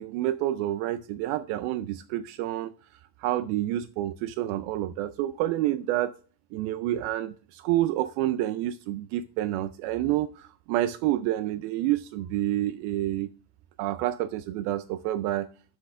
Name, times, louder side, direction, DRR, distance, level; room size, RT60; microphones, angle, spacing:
voice 1, 0.0-6.1 6.5-13.3 13.8-15.5, right 14 dB, 85° right, 2.4 m, -28 dB
12.5 x 8.7 x 2.4 m
omnidirectional pair, 4.4 m